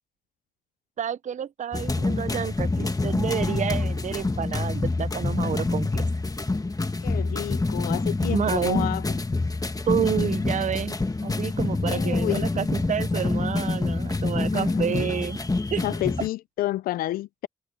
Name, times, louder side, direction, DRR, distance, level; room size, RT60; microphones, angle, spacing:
voice 1, 1.0-6.1 8.3-8.9 9.9-11.0 11.2-15.4 15.7-15.8, right 8 dB, 55° right, 0.6 m, -29 dB
sound 1, 1.7-16.3, left 3 dB, 25° left, 1.7 m, -26 dB
voice 2, 7.0-9.2 11.9-12.5 14.5-15.1 15.8-17.5, left 15 dB, 85° left, 0.5 m, -30 dB
supercardioid pair, 50°, 15 cm